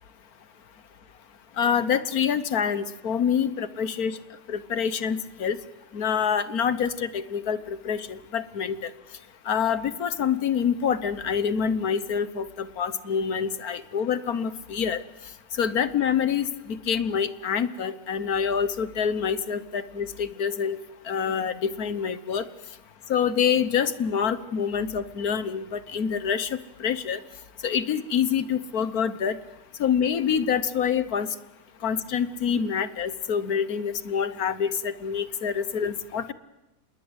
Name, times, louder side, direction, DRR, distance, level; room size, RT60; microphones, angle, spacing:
voice 1, 1.6-4.2 4.5-5.6 5.9-8.9 9.4-15.0 15.5-20.8 21.0-22.4 23.1-27.2 27.6-29.4 29.8-31.3 31.8-36.3, left 7 dB, 60° left, 14 dB, 1.6 m, -26 dB
27.0 x 21.5 x 8.1 m, 0.97 s
omnidirectional pair, 1.8 m